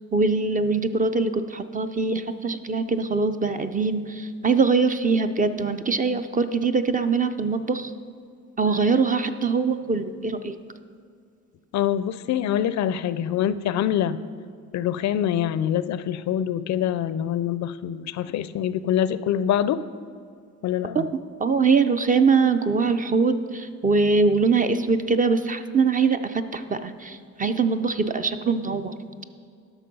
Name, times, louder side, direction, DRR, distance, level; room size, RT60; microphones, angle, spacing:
voice 1, 0.1-7.9 8.6-10.6 20.9-21.0 21.4-28.9, right 4 dB, 25° right, 9 dB, 0.5 m, -22 dB
voice 2, 11.7-14.2 14.7-19.8 20.6-21.0, left 10 dB, 65° left, 15 dB, 0.5 m, -25 dB
12.0 x 6.1 x 5.3 m, 2.3 s
cardioid pair, 90°, 30 cm